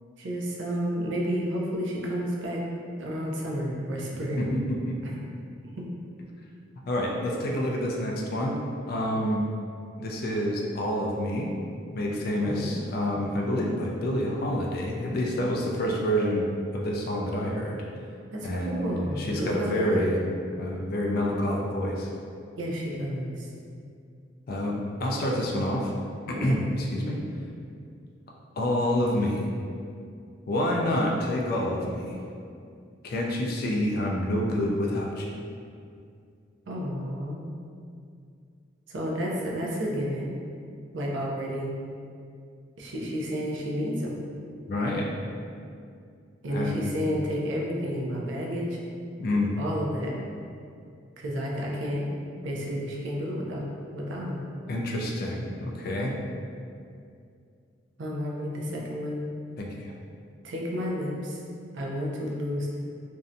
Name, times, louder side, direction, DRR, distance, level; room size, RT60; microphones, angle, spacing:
voice 1, 0.2-2.6 3.0-4.6 5.0-5.1 5.8-5.9 12.4-12.8 18.3-20.1 22.6-23.5 26.5-26.6 36.7-37.4 38.9-40.3 40.9-41.7 42.8-44.2 46.4-48.8 49.6-50.2 51.2-53.6 53.9-54.4 58.0-59.2 60.4-61.4 61.7-62.8, equal, 65° right, -2 dB, 0.4 m, -31 dB
voice 2, 4.4-5.1 6.9-8.6 8.9-9.4 10.0-11.5 11.9-16.5 16.7-17.8 18.4-20.2 20.6-22.1 24.5-25.9 26.3-27.2 28.6-29.5 30.5-32.2 33.0-35.3 44.7-45.1 46.5-46.9 49.2-49.5 54.7-56.1 59.6-59.9, left 1 dB, 50° left, -1 dB, 0.3 m, -28 dB
2.6 x 2.1 x 2.5 m, 2.4 s
head